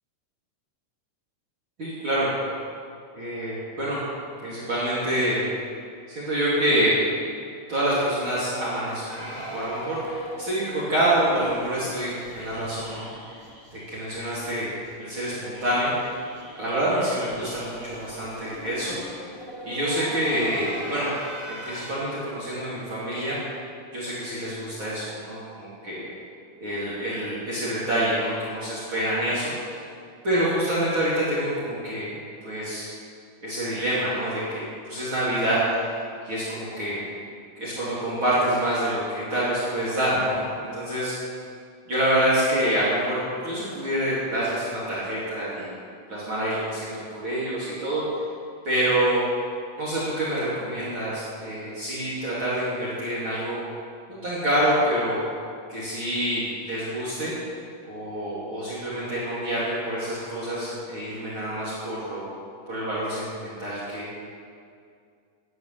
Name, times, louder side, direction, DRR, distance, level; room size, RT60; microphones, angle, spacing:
voice 1, 1.8-2.3 3.1-4.0 4.4-5.4 6.1-7.0 7.7-13.1 13.7-14.7 15.0-15.9 16.6-19.0 19.7-21.1 21.5-23.4 23.9-26.1 26.6-29.5 30.2-32.2 32.4-32.9 33.4-35.6 36.2-37.0 37.6-41.1 41.9-45.7 46.1-46.9 47.2-48.0 48.6-49.2 49.8-53.6 54.1-55.2 55.7-57.3 57.9-62.3 62.7-64.1, right 1 dB, 40° right, -9 dB, 3.5 m, -26 dB
sound 1, 9.1-14.2 14.5-14.6 14.8-14.9 15.2-21.9, right 1 dB, 10° right, 3.2 m, -39 dB
11.5 x 9.2 x 9.1 m, 2.3 s
omnidirectional pair, 3.5 m